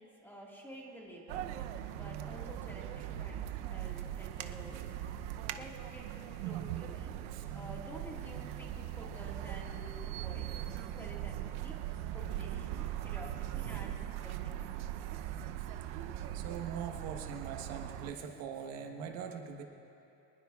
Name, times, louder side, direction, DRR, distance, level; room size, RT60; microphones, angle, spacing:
voice 1, 0.0-1.4 1.9-4.8 5.5-6.1 6.4-7.1 7.5-10.5 10.8-11.7 12.1-13.9 14.2-14.7, equal, 5° left, -3 dB, 1.9 m, -50 dB
sound 1, 1.3-18.1, right 12 dB, 85° right, 0.8 m, -40 dB
voice 2, 16.3-19.6, right 7 dB, 65° right, 3 dB, 1.3 m, -42 dB
25.5 x 20.0 x 2.4 m, 2.9 s
cardioid pair, 170°, 35 cm